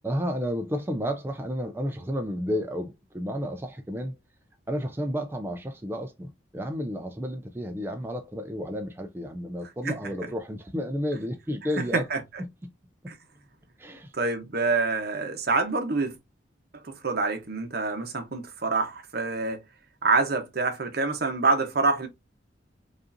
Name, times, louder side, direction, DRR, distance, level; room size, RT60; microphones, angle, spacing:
voice 1, 0.0-4.1 4.7-12.1 12.4-12.7 13.8-14.1, equal, 10° right, 0.4 m, -32 dB
voice 2, 11.8-12.2 13.1-13.2 14.1-16.2 16.7-19.6 20.0-22.1, right 3 dB, 55° right, 0.9 m, -26 dB
5.2 x 2.5 x 2.6 m
head